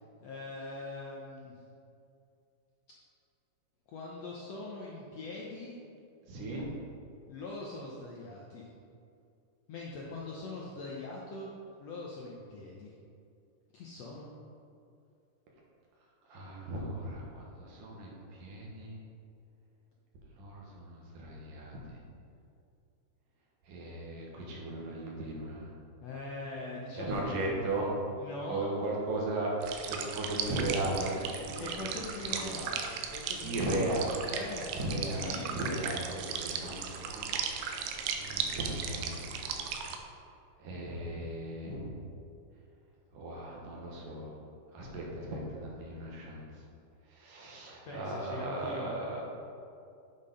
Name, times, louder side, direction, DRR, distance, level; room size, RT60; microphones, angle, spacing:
voice 1, 0.2-1.5 3.9-5.8 7.3-8.7 9.7-11.5 11.8-13.0 13.7-14.3 26.0-27.7 28.1-28.6 31.6-33.9 34.2-35.5 47.8-49.0, left 2 dB, 70° left, -4 dB, 1.6 m, -42 dB
voice 2, 6.3-6.6 16.3-19.0 20.4-22.0 23.7-25.7 27.0-27.9 28.5-29.5 29.9-31.9 32.3-32.5 33.4-34.3 34.8-39.5 40.6-41.9 43.1-44.4 44.7-46.4 47.1-49.2, right 2 dB, 70° right, -3 dB, 2.9 m, -36 dB
sound 1, 29.6-40.0, right 6 dB, 85° right, 2.4 m, -37 dB
8.7 x 5.5 x 5.4 m, 2.5 s
omnidirectional pair, 4.0 m